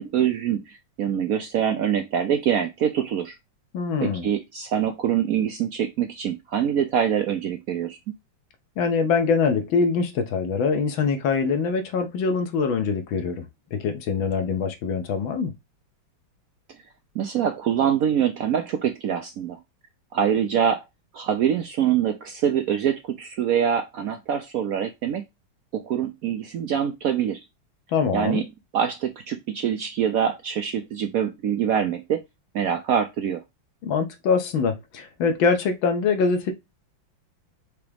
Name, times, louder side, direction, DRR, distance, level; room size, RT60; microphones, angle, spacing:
voice 1, 0.0-3.3 4.0-8.0 17.1-19.6 20.1-20.8 21.1-25.2 25.7-27.4 28.1-28.4 28.7-32.2 32.5-33.4, right 9 dB, 75° right, 0.8 m, -24 dB
voice 2, 3.7-4.3 8.8-13.5 13.7-15.5 27.9-28.4 33.8-36.5, left 5 dB, 80° left, 1.6 m, -23 dB
5.0 x 2.9 x 3.2 m
omnidirectional pair, 2.1 m